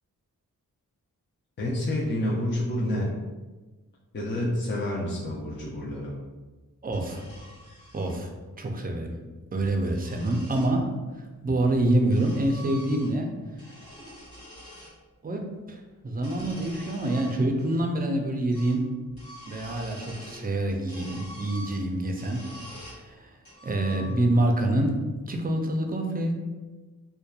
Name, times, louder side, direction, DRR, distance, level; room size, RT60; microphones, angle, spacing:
voice 1, 1.6-3.1 4.1-6.1, left 1 dB, 30° left, -5 dB, 0.5 m, -28 dB
voice 2, 6.8-7.2 7.9-8.3 8.6-9.1 9.5-10.9 11.4-13.3 15.2-18.9 19.5-22.5 23.0-23.4 23.6-25.0 25.3-26.3, right 1 dB, 25° right, 3 dB, 0.4 m, -26 dB
sound 1, 6.9-8.2 9.4-10.7 11.6-13.3 13.5-14.9 16.1-17.8 18.1-18.2 18.5-18.8 19.1-20.5 20.9-23.0 23.4-24.4, equal, 85° left, 1.2 m, -46 dB
2.8 x 2.2 x 2.3 m, 1.2 s
cardioid pair, 45°, 35 cm